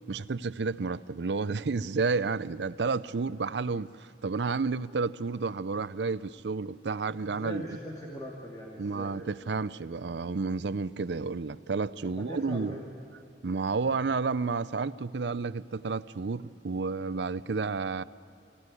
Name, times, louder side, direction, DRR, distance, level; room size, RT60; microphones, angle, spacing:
voice 1, 0.1-7.6 8.8-12.8 13.4-18.0, right 4 dB, 80° right, 0.6 m, -31 dB
voice 2, 7.2-9.1 12.0-12.9, equal, 20° left, 2.6 m, -40 dB
24.0 x 17.0 x 9.8 m
head